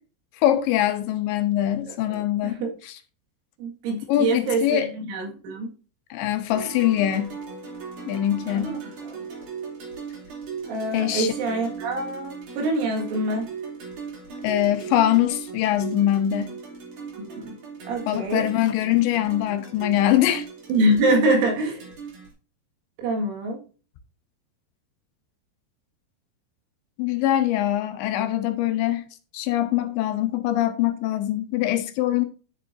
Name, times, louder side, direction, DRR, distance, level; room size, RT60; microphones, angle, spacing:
voice 1, 0.4-3.0 4.1-4.9 6.1-7.3 8.1-8.8 10.9-11.3 14.4-16.5 18.1-20.5 27.0-29.1 29.3-32.3, left 12 dB, 80° left, 3.1 m, -23 dB
voice 2, 2.1-2.7 3.6-5.7 8.5-8.8 10.7-13.5 17.2-17.6 17.9-18.4 20.7-21.8 23.0-23.6, right 1 dB, 80° right, 4.3 m, -25 dB
sound 1, 6.5-22.3, right 5 dB, 45° right, 4.0 m, -38 dB
11.0 x 6.9 x 2.6 m
omnidirectional pair, 5.4 m